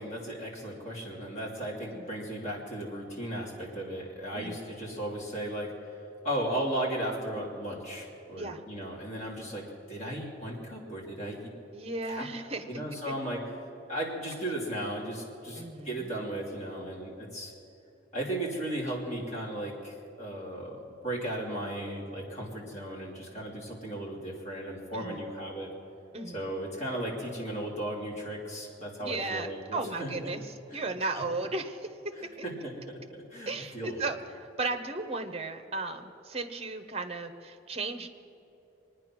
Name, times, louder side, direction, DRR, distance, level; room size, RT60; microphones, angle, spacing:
voice 1, 0.0-5.7 6.2-11.5 12.0-12.2 12.7-13.4 13.9-17.5 18.1-25.7 26.3-30.3 30.7-30.8 32.2-34.0, right 1 dB, 35° left, -3 dB, 3.1 m, -36 dB
voice 2, 11.7-12.6 15.6-16.1 24.9-25.2 26.1-26.4 29.0-30.4 30.7-32.1 33.5-38.1, right 3 dB, 30° right, 8 dB, 0.8 m, -35 dB
24.5 x 9.8 x 6.1 m, 2.8 s
head